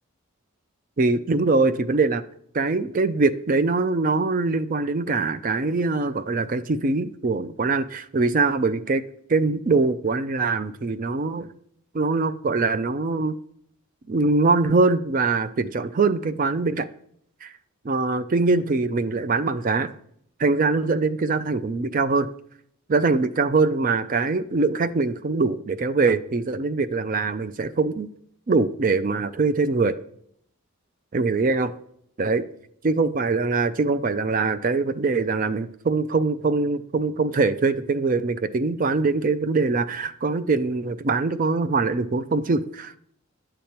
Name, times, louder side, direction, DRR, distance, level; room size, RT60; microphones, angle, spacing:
voice 1, 1.0-2.2 2.5-9.0 9.3-11.5 11.9-13.4 14.1-16.9 17.4-17.5 17.8-19.9 20.4-22.3 22.9-28.1 28.5-30.0 31.1-31.7 32.2-32.4 32.8-42.9, right 3 dB, 40° right, 0.4 m, -23 dB
10.5 x 6.9 x 4.4 m
head